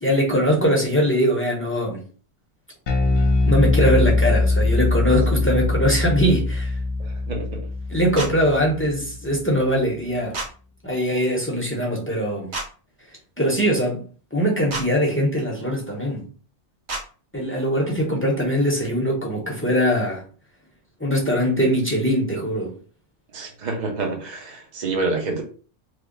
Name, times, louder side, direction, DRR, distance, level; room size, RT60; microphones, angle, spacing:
voice 1, 0.0-2.0 3.5-6.7 7.9-10.4 10.8-12.5 13.4-14.0 14.3-16.2 17.3-20.2 21.0-22.7, equal, 15° left, 0.7 m, -21 dB
Bass guitar, 2.9-9.3, left 2 dB, 70° left, 0.9 m, -22 dB
voice 2, 7.0-7.6 23.3-25.4, right 3 dB, 40° right, 0.8 m, -28 dB
sound 1, 8.2-8.3 10.3-10.5 12.5-12.7 14.7-14.9 16.9-17.0, right 3 dB, 70° right, 1.4 m, -28 dB
3.2 x 2.0 x 3.7 m
omnidirectional pair, 1.2 m